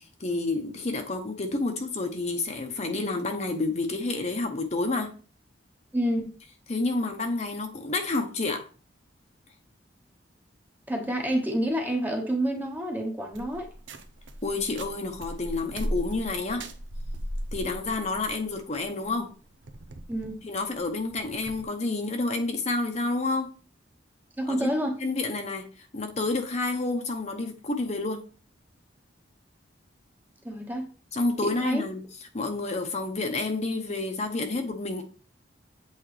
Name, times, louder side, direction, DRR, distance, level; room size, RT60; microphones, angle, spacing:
voice 1, 0.0-5.1 6.7-8.7 14.4-16.7 17.5-19.3 20.4-23.5 24.5-24.7 25.0-28.2 31.1-32.0 32.3-35.0, left 3 dB, 40° left, 0.8 m, -29 dB
voice 2, 5.9-6.3 10.9-13.7 20.1-20.4 24.4-25.0 30.4-30.9 31.4-31.8, right 1 dB, 10° right, 1.0 m, -28 dB
sound 1, 13.3-21.7, equal, 90° right, 0.7 m, -38 dB
8.1 x 3.7 x 3.3 m
head